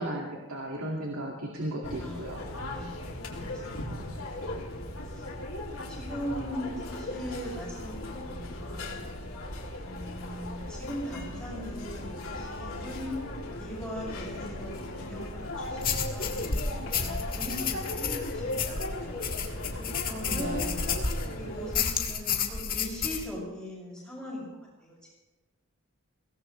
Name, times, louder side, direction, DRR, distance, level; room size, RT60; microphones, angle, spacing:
voice 1, 0.0-2.4 20.3-20.8, right 1 dB, 85° right, -1 dB, 2.3 m, -35 dB
sound 1, 1.8-21.8, left 1 dB, 80° left, 3.1 m, -37 dB
voice 2, 2.0-4.8 5.1-5.3 5.9-9.2 9.8-13.2 13.6-19.3 19.8-20.7 21.3-24.5 24.8-25.0, equal, 5° left, -6 dB, 6.8 m, -40 dB
sound 2, 15.8-21.3 21.7-23.3, left 6 dB, 40° left, 1.8 m, -31 dB
23.0 x 17.5 x 3.3 m, 1.2 s
head